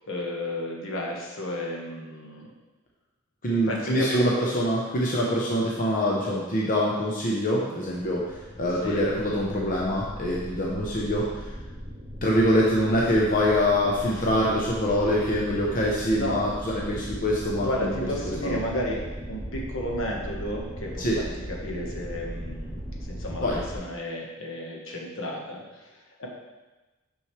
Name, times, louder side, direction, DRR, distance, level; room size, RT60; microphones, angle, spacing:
voice 1, 0.1-2.4 3.7-4.3 8.8-9.1 16.1-16.4 17.6-19.0 19.3-22.8 23.1-26.3, left 1 dB, 70° left, -2 dB, 1.3 m, -33 dB
voice 2, 3.4-11.2 12.2-18.1 18.4-18.6 21.0-21.2 23.4-23.6, equal, 40° left, -4 dB, 0.8 m, -24 dB
sound 1, 7.8-23.8, equal, ahead, 1.6 m, -38 dB
6.2 x 6.1 x 3.2 m, 1.2 s
head